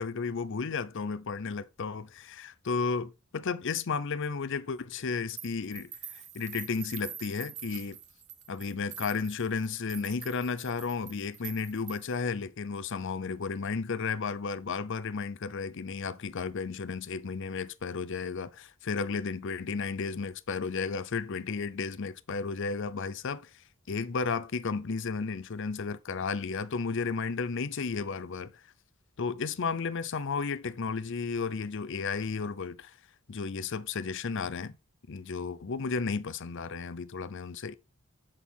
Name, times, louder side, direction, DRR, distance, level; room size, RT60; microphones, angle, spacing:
voice 1, 0.0-8.0 8.5-23.5 23.9-28.5 29.2-32.9 33.3-34.8 35.1-37.7, left 5 dB, 60° left, 0.6 m, -33 dB
sound 1, 5.4-12.2, right 9 dB, 35° right, 0.9 m, -45 dB
7.6 x 6.3 x 3.5 m
head